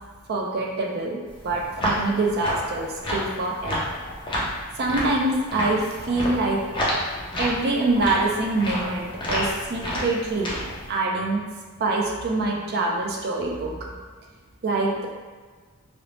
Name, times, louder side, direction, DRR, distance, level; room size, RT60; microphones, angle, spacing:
voice 1, 0.3-4.0 4.8-6.9 7.4-10.6 10.9-11.4 11.8-14.0 14.6-15.1, right 2 dB, 45° right, 0 dB, 0.4 m, -25 dB
sound 1, 1.3-10.9, equal, 20° left, 0.4 m, -30 dB
2.7 x 2.0 x 3.0 m, 1.5 s
head